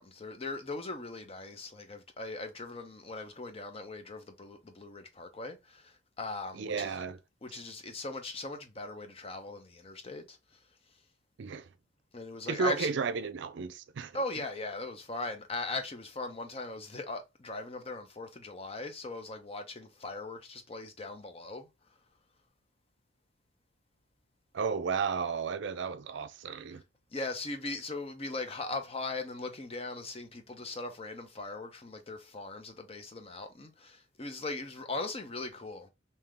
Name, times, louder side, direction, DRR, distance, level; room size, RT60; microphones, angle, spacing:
voice 1, 0.0-6.9 7.4-10.4 12.1-12.9 14.1-21.7 27.1-35.9, left 3 dB, 30° left, 0.7 m, -39 dB
voice 2, 6.6-7.2 11.4-11.7 12.5-14.2 24.5-26.8, right 5 dB, 65° right, 0.4 m, -33 dB
3.7 x 2.8 x 3.2 m
head